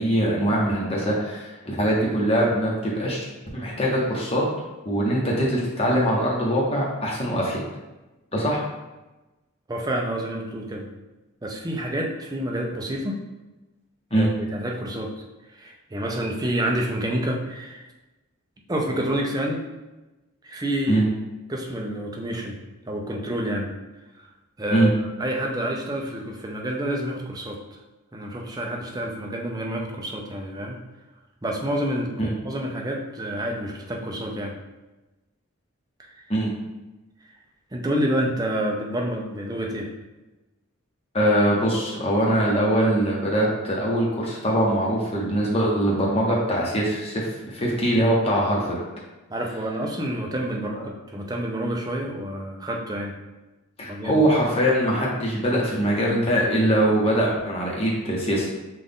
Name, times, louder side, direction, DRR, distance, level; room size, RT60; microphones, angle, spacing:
voice 1, 0.0-3.2 3.5-4.4 4.8-7.6 8.3-8.6 14.1-14.3 20.9-21.0 24.7-24.9 32.2-32.3 36.3-36.5 41.1-48.8 53.8-58.5, right 1 dB, 25° left, -3 dB, 1.0 m, -22 dB
voice 2, 9.7-10.9 11.4-13.2 14.1-15.1 15.5-17.9 18.7-19.6 20.4-21.0 21.5-22.6 22.9-23.7 24.1-24.3 24.6-27.8 28.1-30.8 31.4-34.6 36.0-36.2 37.7-39.9 49.3-53.2 53.9-54.2, right 1 dB, 20° right, 0 dB, 0.5 m, -28 dB
5.8 x 2.5 x 3.6 m, 1.1 s
head